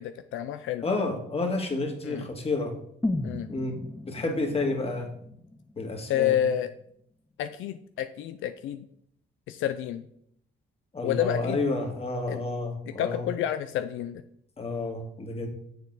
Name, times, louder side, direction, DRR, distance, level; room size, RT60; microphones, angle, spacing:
voice 1, 0.0-0.9 2.0-2.3 3.2-3.5 6.1-6.7 7.4-8.9 9.5-10.0 11.0-11.6 12.3-12.4 13.0-14.2, left 11 dB, 80° left, 10 dB, 0.5 m, -29 dB
voice 2, 0.8-2.7 3.5-3.7 4.0-5.1 5.8-6.4 10.9-13.2 14.6-15.5, left 3 dB, 30° left, 2 dB, 1.9 m, -30 dB
sound 1, 3.0-7.0 7.3-7.4, left 2 dB, 10° left, 0.6 m, -36 dB
7.0 x 6.8 x 3.9 m, 0.69 s
cardioid pair, 90°, 20 cm